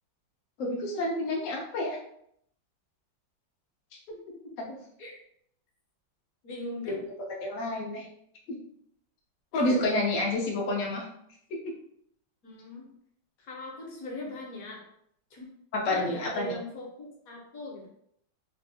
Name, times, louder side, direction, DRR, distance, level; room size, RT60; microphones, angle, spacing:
voice 1, 0.6-2.0 6.9-7.0 7.3-8.1 8.5-8.6 9.5-11.0 15.7-16.6, left 2 dB, 80° left, -1 dB, 0.7 m, -29 dB
voice 2, 6.4-7.0 9.7-9.8 12.4-12.9 13.4-14.8 15.3-15.5 15.9-17.9, left 1 dB, 60° left, -1 dB, 1.0 m, -39 dB
3.3 x 2.3 x 2.6 m, 0.70 s
omnidirectional pair, 2.0 m